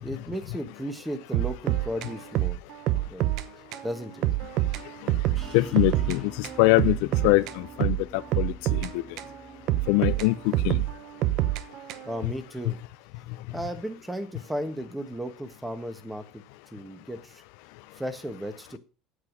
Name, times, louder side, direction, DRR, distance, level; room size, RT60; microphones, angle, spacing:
voice 1, 0.0-2.6 3.0-3.3 3.8-4.2 12.0-12.8 13.5-16.4 16.7-17.4 17.9-18.8, equal, 5° right, 1.3 m, -35 dB
sound 1, 1.3-3.5 3.7-3.9 4.2-6.2 6.4-9.3 9.7-12.2, right 15 dB, 55° right, 0.8 m, -27 dB
sound 2, 5.3-10.7, equal, 20° right, 2.2 m, -48 dB
voice 2, 5.5-7.0 7.2-9.0 9.9-10.8, left 20 dB, 75° left, 0.5 m, -23 dB
8.6 x 7.8 x 6.2 m
cardioid pair, 155°, 0 cm